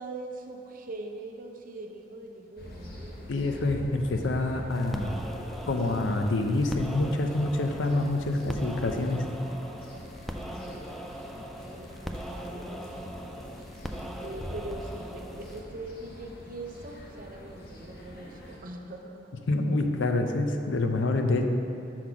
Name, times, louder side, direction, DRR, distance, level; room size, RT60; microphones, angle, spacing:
voice 1, 0.0-3.5 11.7-13.3 14.2-19.3, right 2 dB, 45° right, 2 dB, 0.6 m, -42 dB
sound 1, 2.6-18.6, left 1 dB, 55° left, 1.1 m, -44 dB
voice 2, 3.3-5.1 5.7-9.2 19.5-21.5, left 2 dB, 75° left, 5 dB, 0.5 m, -27 dB
sound 2, 4.7-15.6, equal, ahead, 0.3 m, -40 dB
6.2 x 4.0 x 5.7 m, 2.7 s
head